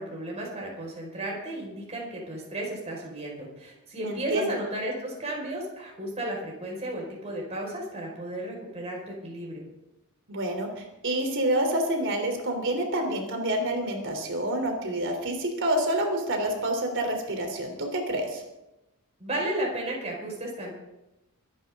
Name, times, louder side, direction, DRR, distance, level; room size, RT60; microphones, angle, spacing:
voice 1, 0.0-9.6 19.2-20.7, right 1 dB, 30° right, -2 dB, 5.2 m, -34 dB
voice 2, 4.0-4.5 10.3-18.4, right 1 dB, 55° right, 3 dB, 3.5 m, -28 dB
24.5 x 11.0 x 3.8 m, 0.95 s
head